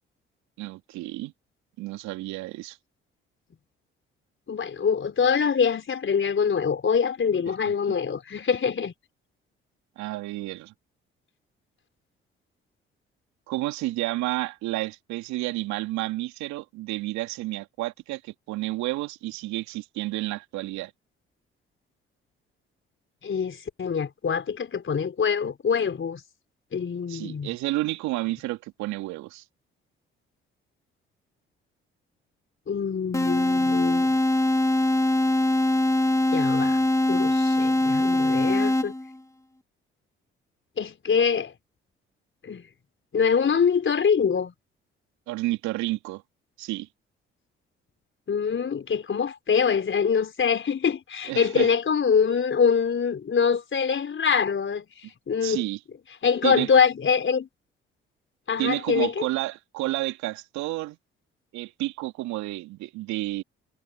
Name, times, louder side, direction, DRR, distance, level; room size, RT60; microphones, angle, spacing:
voice 1, 0.6-1.3 1.8-2.8 7.7-7.8 10.0-10.7 13.5-20.9 27.1-29.4 45.3-46.2 46.6-46.9 51.3-51.7 55.4-55.8 56.4-56.7 58.6-61.0 61.5-63.4, right 18 dB, 70° right, 3.1 m, -30 dB
voice 2, 4.5-8.9 23.2-26.2 26.7-27.5 32.7-34.2 36.3-36.8 37.1-38.9 40.8-41.5 42.4-42.6 43.1-44.5 48.3-54.9 55.3-55.6 56.2-57.5 58.5-59.3, left 6 dB, 45° left, 4.4 m, -24 dB
sound 1, 33.1-39.2, left 1 dB, 10° left, 1.8 m, -22 dB
hypercardioid pair, 45°, 29 cm